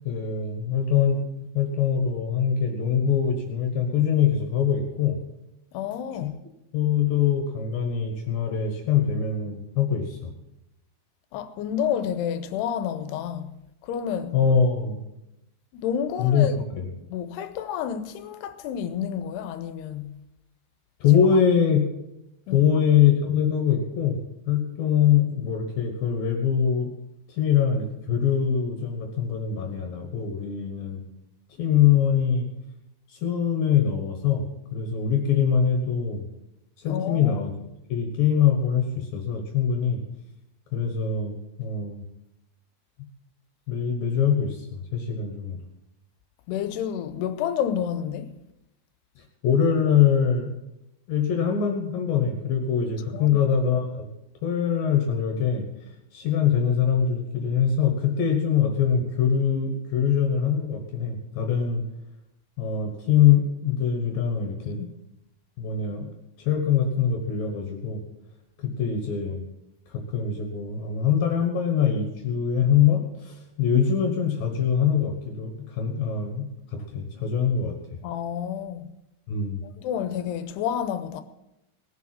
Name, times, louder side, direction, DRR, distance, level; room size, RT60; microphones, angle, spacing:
voice 1, 0.1-1.2 1.5-5.2 6.2-6.3 6.7-10.3 14.3-15.0 16.2-16.9 21.0-21.9 22.5-24.2 24.5-26.9 27.3-31.0 31.6-32.5 33.1-34.4 34.7-36.2 36.8-37.5 37.9-40.0 40.7-42.0 43.7-45.6 49.2-50.5 51.1-54.1 54.4-55.7 56.1-61.8 62.6-64.8 65.6-68.0 68.6-69.4 69.9-76.5 76.7-78.0 79.3-79.6, left 8 dB, 65° left, 2.8 m, -23 dB
voice 2, 5.7-6.4 11.3-13.5 13.8-14.4 15.7-16.6 17.1-20.1 21.1-21.3 22.5-22.7 36.9-37.4 46.5-48.3 53.1-53.4 64.8-64.9 78.0-78.8 79.8-81.2, left 9 dB, 90° left, 2.8 m, -30 dB
18.5 x 7.1 x 7.6 m
omnidirectional pair, 4.7 m